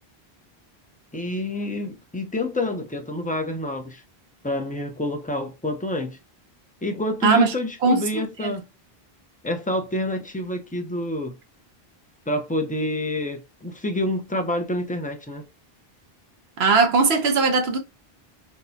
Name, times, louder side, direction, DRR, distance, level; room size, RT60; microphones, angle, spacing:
voice 1, 1.1-4.0 4.4-6.2 6.8-8.7 9.4-11.3 12.3-15.4, left 1 dB, 10° left, 0.5 m, -28 dB
voice 2, 7.2-7.5 7.8-8.5 16.6-17.8, right 4 dB, 85° right, 1.1 m, -20 dB
4.6 x 2.2 x 2.7 m
omnidirectional pair, 1.0 m